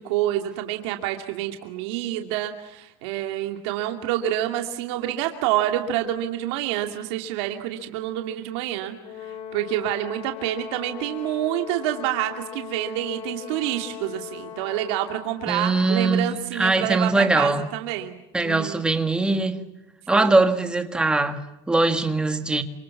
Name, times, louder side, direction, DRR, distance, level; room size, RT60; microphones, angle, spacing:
voice 1, 0.0-18.8 20.1-20.4, right 13 dB, 90° right, 2.5 m, -28 dB
Brass instrument, 9.0-15.4, left 9 dB, 45° left, 3.3 m, -39 dB
voice 2, 15.5-17.7 18.3-19.6 20.1-22.6, right 3 dB, 5° right, 1.5 m, -21 dB
28.5 x 26.5 x 7.2 m
cardioid pair, 175°, 14 cm